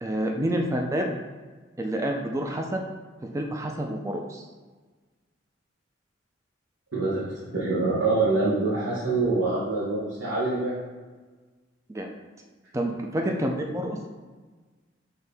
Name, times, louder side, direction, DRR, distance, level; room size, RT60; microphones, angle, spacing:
voice 1, 0.0-1.1 1.8-2.8 3.3-4.4 11.9-12.1 12.7-14.0, right 1 dB, 15° right, 2 dB, 0.3 m, -28 dB
voice 2, 6.9-7.2 7.5-10.7, right 3 dB, 65° right, -8 dB, 1.1 m, -25 dB
5.8 x 2.7 x 3.4 m, 1.4 s
head